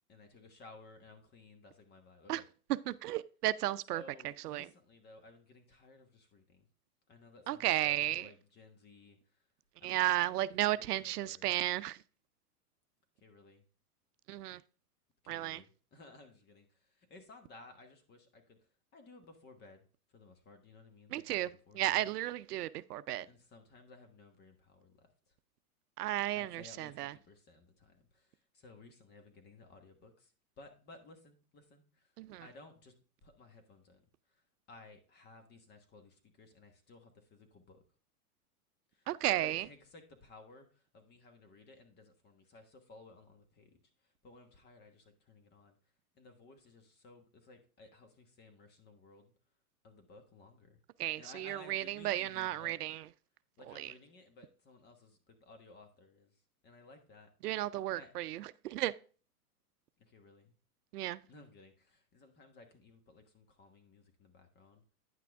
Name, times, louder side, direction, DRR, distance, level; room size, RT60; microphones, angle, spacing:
voice 1, 0.1-2.5 3.9-6.7 7.1-9.4 9.8-11.5 13.2-13.6 15.2-18.6 18.9-19.8 20.1-22.1 23.3-25.3 26.3-32.1 32.4-32.9 33.2-37.8 38.9-39.1 39.4-43.8 44.0-45.8 46.1-49.3 49.8-50.8 51.2-52.7 53.6-56.3 56.6-57.3 57.9-58.1 60.0-60.5 61.3-64.8, left 3 dB, 20° left, 1.3 m, -58 dB
voice 2, 2.9-4.0 4.4-4.7 7.5-8.3 9.8-12.0 14.3-14.6 15.3-15.6 21.1-23.3 26.0-27.1 32.2-32.5 39.1-39.7 51.0-53.0 53.8-53.9 57.4-58.9 60.9-61.2, right 14 dB, 85° right, 0.6 m, -34 dB
9.5 x 6.0 x 3.5 m
hypercardioid pair, 140°, 45 cm